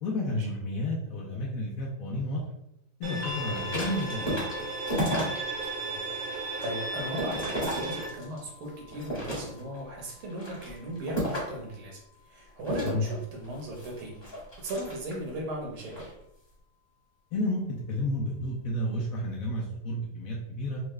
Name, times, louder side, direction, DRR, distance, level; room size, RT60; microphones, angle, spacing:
voice 1, 0.0-2.4 3.0-4.4 12.8-13.0 17.3-20.8, left 1 dB, 80° left, -3 dB, 0.7 m, -31 dB
Bowed string instrument, 3.0-8.1, right 3 dB, 60° right, 1.0 m, -35 dB
sound 1, 3.2-15.3 16.4-16.5, left 7 dB, 35° left, 1.4 m, -48 dB
sound 2, 3.5-5.7 6.1-8.5 8.9-9.8 10.3-11.6 12.6-15.3 15.8-16.1, equal, 15° left, 1.0 m, -33 dB
voice 2, 5.8-12.0 12.2-14.2 14.6-16.1, right 1 dB, 85° right, -1 dB, 1.9 m, -37 dB
4.3 x 2.4 x 3.1 m, 0.81 s
omnidirectional pair, 2.3 m